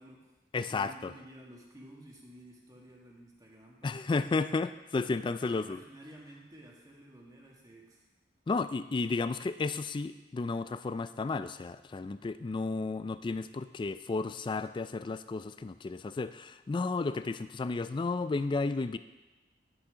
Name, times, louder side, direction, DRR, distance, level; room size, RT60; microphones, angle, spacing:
voice 1, 0.0-4.2 5.4-8.1, right 1 dB, 20° right, -2 dB, 1.7 m, -53 dB
voice 2, 0.5-1.1 3.8-5.8 8.5-19.0, left 3 dB, 25° left, 12 dB, 0.3 m, -33 dB
10.5 x 6.5 x 5.0 m, 1.1 s
head